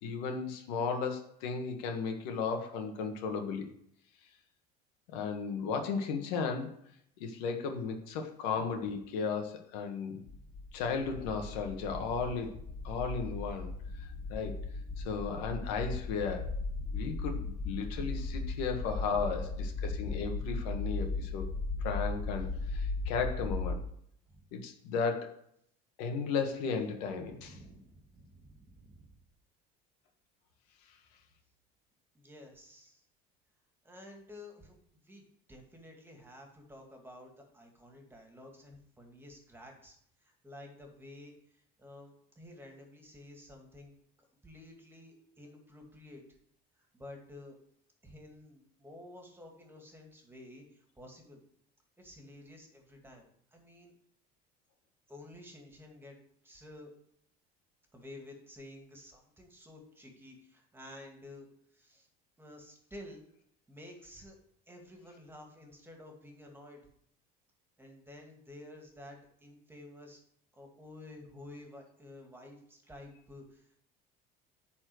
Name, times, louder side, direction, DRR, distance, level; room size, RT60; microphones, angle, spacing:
voice 1, 0.0-3.7 5.1-6.7 7.2-10.2 10.7-14.6 15.0-16.5 16.9-21.5 21.8-23.8 24.5-25.4 26.0-27.5, left 5 dB, 80° left, 4 dB, 1.6 m, -35 dB
sound 1, 10.3-23.8, left 3 dB, 30° left, 1.0 m, -37 dB
voice 2, 27.1-29.2 32.1-33.0 33.8-34.8 35.0-40.0 40.2-43.9 44.4-46.2 46.8-47.6 48.0-51.4 52.0-53.9 55.1-56.2 56.4-56.9 57.9-62.1 62.4-63.3 63.7-64.4 64.7-66.8 67.8-70.2 70.5-73.8, left 1 dB, 10° right, 2 dB, 2.4 m, -52 dB
9.8 x 4.4 x 6.3 m, 0.69 s
supercardioid pair, 105°, 21 cm